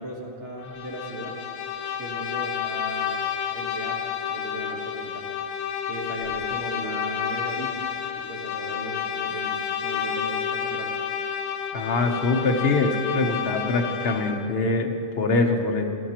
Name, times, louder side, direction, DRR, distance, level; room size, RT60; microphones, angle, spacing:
voice 1, 0.0-1.4 2.0-3.2 3.5-5.3 5.9-7.7 8.2-9.6 9.8-10.9, right 1 dB, 65° right, -1 dB, 1.7 m, -37 dB
Bowed string instrument, 0.6-14.5, left 8 dB, 80° left, 1.1 m, -30 dB
voice 2, 11.7-15.8, left 3 dB, 55° left, 3 dB, 1.1 m, -23 dB
14.0 x 12.5 x 2.9 m, 2.4 s
omnidirectional pair, 1.3 m